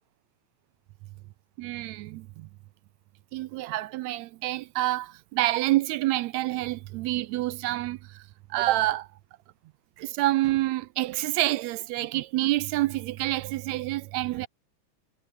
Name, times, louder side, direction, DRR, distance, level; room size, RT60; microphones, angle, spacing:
voice 1, 1.6-2.5 3.3-8.2 8.5-9.1 10.0-14.5, right 17 dB, 80° right, 1.8 m, -27 dB
omnidirectional pair, 3.3 m